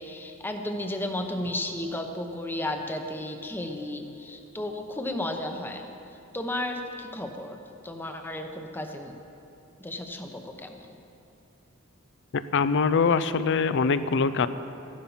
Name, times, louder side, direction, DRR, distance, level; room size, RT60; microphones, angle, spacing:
voice 1, 0.0-5.9 6.3-9.1 9.8-11.0, left 1 dB, 10° left, 4 dB, 0.9 m, -33 dB
voice 2, 12.3-14.5, left 5 dB, 60° left, 13 dB, 0.5 m, -23 dB
14.0 x 11.5 x 5.7 m, 2.8 s
head